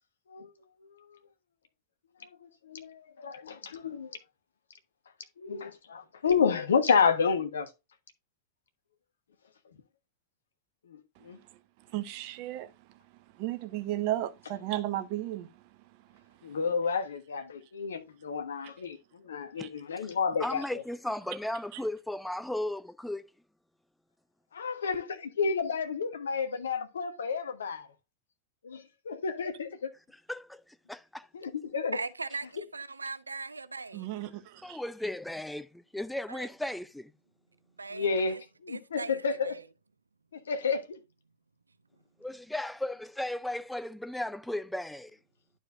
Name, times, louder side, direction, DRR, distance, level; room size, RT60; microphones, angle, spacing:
voice 1, 2.2-4.2 5.4-7.7 10.9-11.4 16.4-20.6 24.5-27.9 28.6-29.9 31.3-32.0 32.6-32.7 37.9-39.5 40.5-41.0, left 5 dB, 70° left, 1.2 m, -30 dB
voice 2, 11.9-12.7 13.4-15.5 19.6-19.7 33.9-34.8, right 14 dB, 45° right, 0.9 m, -34 dB
voice 3, 20.4-23.3 30.1-31.3 34.6-37.1 42.2-45.1, left 1 dB, 5° left, 0.4 m, -36 dB
voice 4, 31.9-34.2 36.3-36.5 37.8-38.4 38.7-39.7, right 3 dB, 80° right, 0.5 m, -40 dB
11.5 x 4.7 x 2.5 m
figure-of-eight pair, 90°, 0 cm